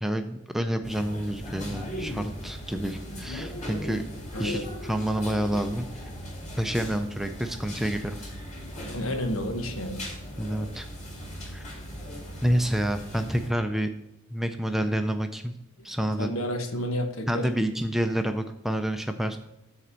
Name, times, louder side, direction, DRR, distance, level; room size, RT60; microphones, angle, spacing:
voice 1, 0.0-4.0 4.4-5.9 6.6-8.3 10.4-10.9 11.5-11.6 12.4-13.9 14.3-15.5 15.8-16.3 17.3-19.4, equal, ahead, 7 dB, 0.4 m, -28 dB
sound 1, 0.8-13.5, equal, 35° left, 2.4 m, -38 dB
voice 2, 4.3-4.7 8.9-10.0 16.2-17.5, equal, 75° left, 6 dB, 1.2 m, -30 dB
7.6 x 4.3 x 6.7 m, 0.86 s
head